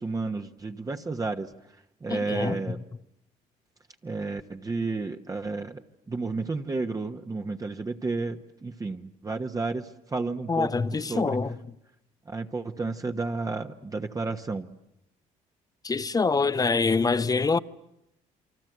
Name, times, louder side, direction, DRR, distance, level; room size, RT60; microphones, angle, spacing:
voice 1, 0.0-1.5 2.0-2.8 4.0-5.8 6.1-11.4 12.3-14.7, right 3 dB, 25° right, 1.2 m, -32 dB
voice 2, 2.1-2.8 10.5-11.6 15.8-17.6, left 4 dB, 25° left, 1.0 m, -25 dB
29.5 x 23.5 x 8.0 m
supercardioid pair, 85°, 15 cm